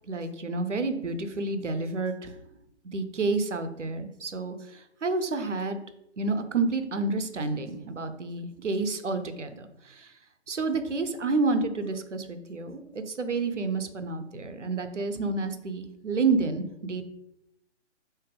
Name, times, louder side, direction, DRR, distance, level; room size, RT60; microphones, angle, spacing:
voice 1, 0.1-2.3 2.9-5.8 6.2-10.1 10.5-17.1, right 3 dB, 80° right, 9 dB, 0.7 m, -29 dB
3.5 x 2.8 x 3.3 m, 0.82 s
figure-of-eight pair, 140°, 36 cm